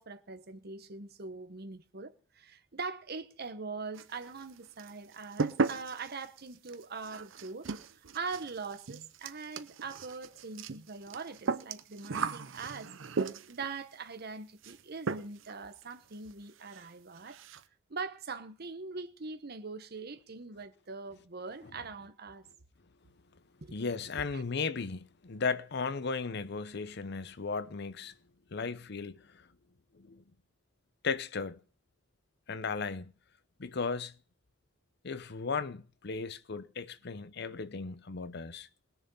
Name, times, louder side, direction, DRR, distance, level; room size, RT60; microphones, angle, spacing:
voice 1, 0.0-7.7 8.1-12.9 13.5-17.4 17.9-22.4 23.6-23.7 24.3-24.4, right 4 dB, 55° right, 1.1 m, -42 dB
sound 1, 3.9-4.5 4.8-13.7 14.6-14.8 15.1-15.5 15.8-15.9 16.3-16.4 16.7-16.8 17.2-17.6, right 4 dB, 80° right, 0.7 m, -36 dB
voice 2, 23.7-28.1 28.5-29.5 29.9-30.2 31.0-31.6 32.5-33.1 33.6-34.1 35.0-38.7, left 4 dB, 60° left, 0.7 m, -36 dB
20.0 x 6.9 x 5.5 m
head